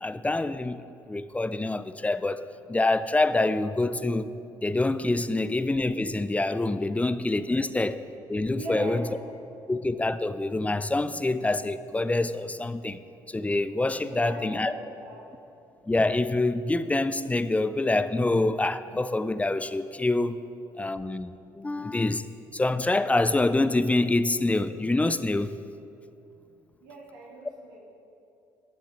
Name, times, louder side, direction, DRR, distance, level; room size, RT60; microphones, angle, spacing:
voice 1, 0.0-9.0 9.7-13.0 13.3-14.7 15.9-20.4 20.8-25.6, left 2 dB, 15° left, 13 dB, 0.6 m, -26 dB
voice 2, 8.5-9.0 14.0-15.2 26.8-27.8, right 1 dB, 80° right, -2 dB, 2.5 m, -39 dB
20.0 x 7.3 x 4.4 m, 2.8 s
hypercardioid pair, 55°, 10 cm